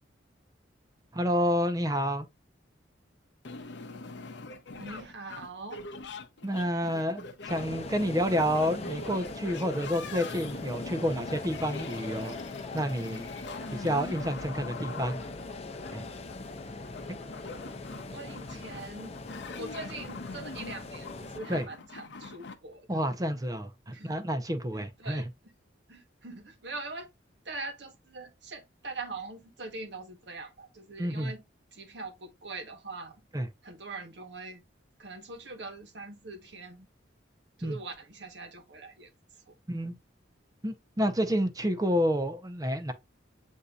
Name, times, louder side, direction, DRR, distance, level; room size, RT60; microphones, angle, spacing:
voice 1, 1.1-2.3 6.4-12.4 12.7-13.2 13.7-15.2 15.9-16.0 17.1-17.2 21.5-21.7 22.9-25.2 31.0-31.3 33.3-33.5 37.6-37.8 39.7-40.0 40.6-42.9, equal, 20° right, 0.6 m, -29 dB
sound 1, 3.4-22.5, left 3 dB, 65° left, 0.7 m, -43 dB
voice 2, 4.7-5.8 18.1-19.2 19.6-22.9 23.9-24.2 24.7-25.5 25.9-27.1 27.4-31.4 31.7-33.2 33.6-34.6 35.0-36.9 37.6-39.1 39.5-39.6, right 3 dB, 60° right, 1.1 m, -42 dB
sound 2, 7.5-21.4, left 3 dB, 35° left, 0.6 m, -41 dB
8.0 x 2.7 x 2.3 m
head